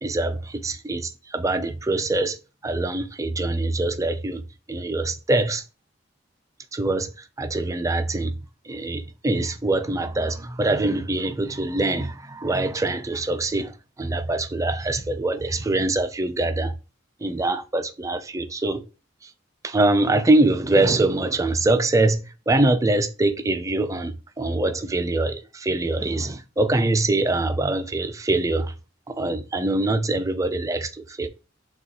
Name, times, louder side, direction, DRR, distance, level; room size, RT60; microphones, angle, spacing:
voice 1, 0.0-4.4 4.7-5.6 6.7-8.3 8.6-16.7 17.2-18.8 19.2-19.3 19.6-28.7 29.1-31.3, right 2 dB, 15° right, 0.4 m, -24 dB
6.4 x 2.4 x 2.9 m
head